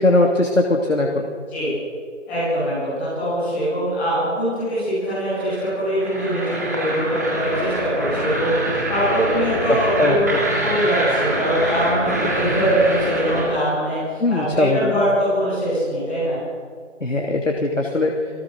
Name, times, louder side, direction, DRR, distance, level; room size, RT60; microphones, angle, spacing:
voice 1, 0.0-1.3 9.7-10.4 14.2-14.9 17.0-18.2, left 2 dB, 90° left, 1 dB, 3.1 m, -20 dB
voice 2, 2.3-8.6 8.9-16.4, equal, 5° left, -13 dB, 7.3 m, -22 dB
sound 1, 5.3-13.5, right 1 dB, 15° right, 2.3 m, -25 dB
28.5 x 18.5 x 6.5 m, 2.1 s
figure-of-eight pair, 170°, 38 cm